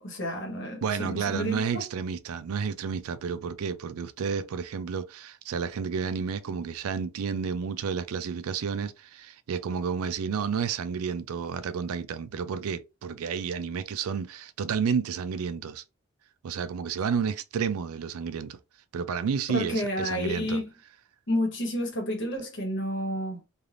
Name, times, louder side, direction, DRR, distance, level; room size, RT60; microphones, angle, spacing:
voice 1, 0.0-1.8 19.5-20.7 21.3-23.4, equal, 55° left, 1.2 m, -30 dB
voice 2, 0.8-15.8 16.4-18.6 18.9-20.6, right 6 dB, 75° right, 0.4 m, -31 dB
3.3 x 2.5 x 2.5 m
head